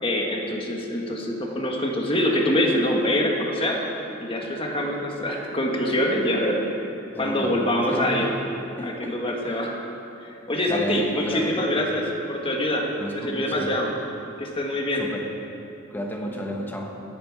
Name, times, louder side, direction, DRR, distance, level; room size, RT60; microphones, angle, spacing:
voice 1, 0.0-3.8 4.2-6.9 7.2-8.3 8.8-9.7 10.2-12.0 12.3-13.9 14.4-15.0, left 1 dB, 30° left, 0 dB, 1.6 m, -25 dB
voice 2, 7.1-7.5 7.9-8.3 8.8-9.6 10.7-11.7 13.0-13.7 15.0-15.3 15.9-17.0, equal, 10° left, 1 dB, 1.4 m, -32 dB
16.5 x 9.7 x 4.9 m, 2.8 s
head